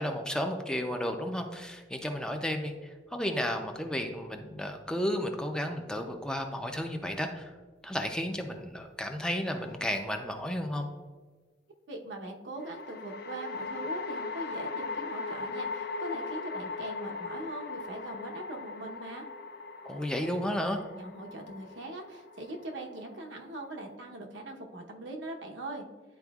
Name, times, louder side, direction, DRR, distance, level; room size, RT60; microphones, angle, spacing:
voice 1, 0.0-7.5 7.8-10.9 19.8-20.8, equal, 5° left, 4 dB, 0.4 m, -33 dB
sound 1, 9.5-10.2 12.6-23.9, left 4 dB, 55° left, 0.5 m, -39 dB
voice 2, 11.9-19.2 21.0-25.9, right 2 dB, 85° right, 1 dB, 0.9 m, -41 dB
10.5 x 4.3 x 2.3 m, 1.4 s
head